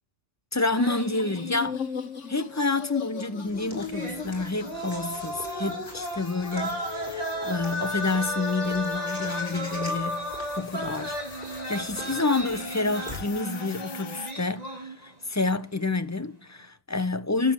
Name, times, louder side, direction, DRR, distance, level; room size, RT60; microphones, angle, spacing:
voice 1, 0.5-1.8 2.3-10.3 10.6-11.1 11.7-17.5, left 3 dB, 15° left, 0.9 m, -28 dB
sound 1, 0.7-2.1 2.4-2.5 3.8-15.3 15.6-15.9, equal, 30° right, 3.4 m, -35 dB
sound 2, 0.8-14.3, left 6 dB, 65° left, 1.6 m, -39 dB
Walk footsteps / Bird vocalization bird call bird song, 3.5-13.4, left 1 dB, 35° left, 4.5 m, -45 dB
19.5 x 9.5 x 7.2 m
omnidirectional pair, 1.4 m